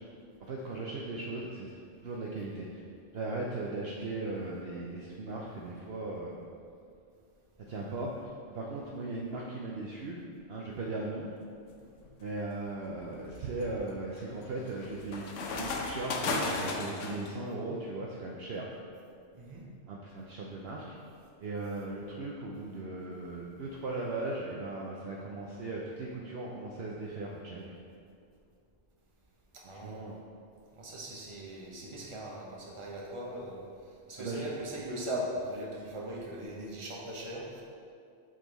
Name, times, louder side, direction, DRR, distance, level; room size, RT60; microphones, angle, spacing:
voice 1, 0.4-1.7 2.0-2.8 3.1-6.4 7.7-10.2 10.5-11.3 12.2-18.7 19.9-21.0 21.4-28.0 29.6-30.2 34.2-34.4, right 2 dB, 60° right, -2 dB, 0.8 m, -38 dB
sound 1, 11.7-12.1 12.7-17.3, left 3 dB, 80° left, 1.0 m, -35 dB
voice 2, 19.3-19.7 29.5-30.0 30.8-33.7 34.1-37.6, right 1 dB, 25° right, -3 dB, 0.9 m, -39 dB
7.5 x 3.8 x 3.9 m, 2.3 s
omnidirectional pair, 1.3 m